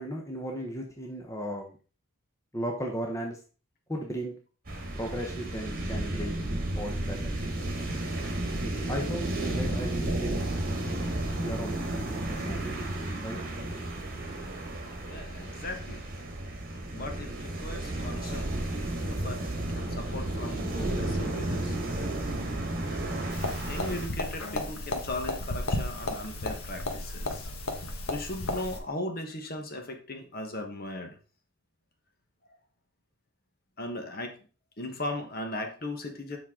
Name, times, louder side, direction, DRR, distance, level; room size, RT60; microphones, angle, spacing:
voice 1, 0.0-1.7 2.5-3.4 3.9-4.4 4.9-6.3 6.7-7.3 8.9-10.4 11.4-12.7 13.2-13.4, equal, 15° left, 1 dB, 0.9 m, -35 dB
sound 1, 4.7-24.1, right 1 dB, 40° right, 1.6 m, -32 dB
voice 2, 15.0-16.1 16.9-18.5 19.0-19.4 19.7-21.8 23.7-27.5 28.1-31.2 33.8-34.3 34.8-36.4, left 1 dB, 40° left, 4 dB, 1.2 m, -37 dB
sound 2, 23.3-28.8, left 2 dB, 80° left, 1.4 m, -34 dB
7.3 x 5.7 x 3.7 m, 0.36 s
head